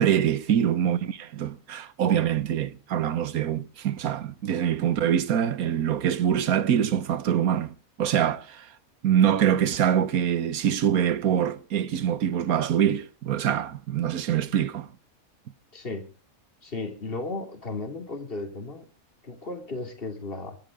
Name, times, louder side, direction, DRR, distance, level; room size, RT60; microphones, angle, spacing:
voice 1, 0.0-8.7 9.0-14.9, right 9 dB, 90° right, 1.4 m, -24 dB
voice 2, 15.7-16.1 16.6-18.8 19.2-20.6, left 3 dB, 40° left, 3.0 m, -35 dB
25.5 x 10.5 x 3.7 m
omnidirectional pair, 1.5 m